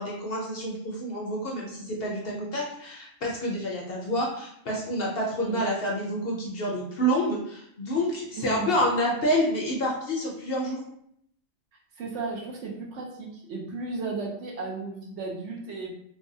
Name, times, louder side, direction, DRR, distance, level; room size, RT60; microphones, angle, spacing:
voice 1, 0.0-10.8, equal, 60° left, -2 dB, 0.7 m, -28 dB
voice 2, 8.4-8.7 12.0-15.9, right 4 dB, 70° right, -1 dB, 0.9 m, -34 dB
3.2 x 2.1 x 2.6 m, 0.71 s
omnidirectional pair, 1.3 m